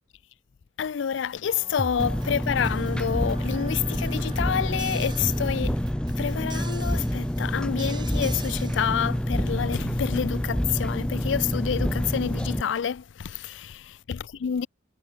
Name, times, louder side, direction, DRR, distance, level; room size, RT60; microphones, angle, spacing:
voice 1, 0.8-5.8 6.2-14.7, left 8 dB, 75° left, 0.4 m, -28 dB
sound 1, 1.5-9.0, right 2 dB, 25° right, 3.0 m, -40 dB
Engine, 2.0-12.6, equal, 5° left, 0.6 m, -27 dB
head